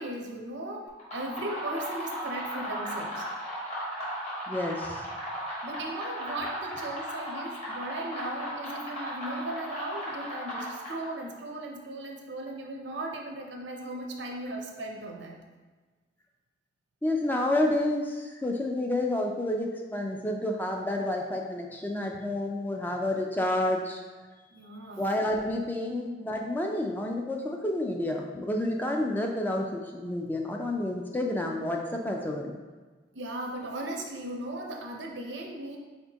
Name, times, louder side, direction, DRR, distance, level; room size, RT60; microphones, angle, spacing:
voice 1, 0.0-3.3 5.6-15.4 24.5-25.1 33.1-35.8, right 1 dB, 85° right, 1 dB, 0.7 m, -37 dB
sound 1, 0.9-11.2, equal, 40° left, 1.4 m, -36 dB
voice 2, 4.5-5.1 17.0-24.0 25.0-32.6, left 1 dB, 10° left, 1 dB, 0.3 m, -29 dB
4.4 x 4.2 x 2.9 m, 1.3 s
head